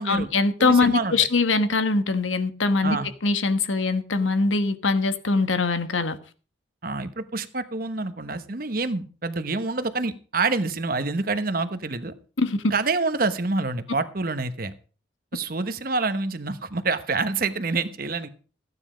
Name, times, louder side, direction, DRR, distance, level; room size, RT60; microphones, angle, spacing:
voice 1, 0.0-3.0 3.2-6.2 12.4-12.6, left 3 dB, 90° left, 10 dB, 1.3 m, -22 dB
voice 2, 0.6-1.2 2.8-3.1 6.8-12.1 12.7-14.7 15.3-18.3, right 3 dB, 50° right, 11 dB, 1.1 m, -27 dB
15.0 x 9.7 x 5.1 m, 0.39 s
head